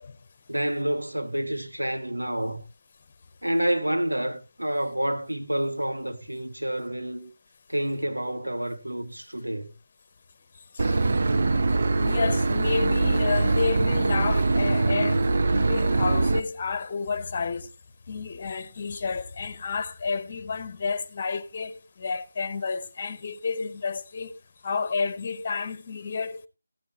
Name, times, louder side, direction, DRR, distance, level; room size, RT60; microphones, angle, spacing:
voice 1, 0.5-2.6 3.4-7.3 7.7-9.7, right 1 dB, 80° right, 1.6 m, -28 dB
Boat Water vehicle / Engine, 10.8-16.4, right 3 dB, 45° right, 0.9 m, -23 dB
voice 2, 12.0-15.2 15.5-17.7 18.1-24.3 24.6-26.5, left 5 dB, 30° left, 1.1 m, -30 dB
16.0 x 9.7 x 3.1 m
figure-of-eight pair, 160°, 0 cm